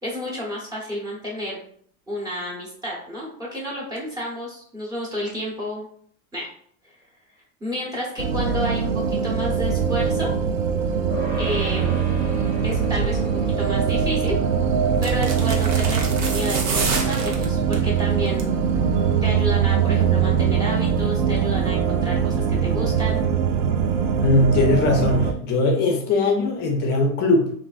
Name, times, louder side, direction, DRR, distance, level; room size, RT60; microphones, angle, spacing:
voice 1, 0.0-1.6 2.1-5.9 6.3-6.5 6.8-6.9 7.6-10.3 11.4-12.0 12.6-14.4 15.0-18.5 19.2-23.2, equal, 10° right, -5 dB, 0.8 m, -31 dB
sound 1, 8.2-25.3, right 7 dB, 60° right, 0.5 m, -22 dB
sound 2, 11.1-20.8, equal, 35° right, 0.9 m, -39 dB
sound 3, 13.9-14.2 14.9-17.9 18.3-18.6 18.9-19.0, right 3 dB, 80° right, 0.9 m, -28 dB
voice 2, 24.2-27.5, left 2 dB, 25° left, 1 dB, 0.5 m, -20 dB
3.3 x 2.5 x 2.3 m, 0.62 s
supercardioid pair, 140°, 41 cm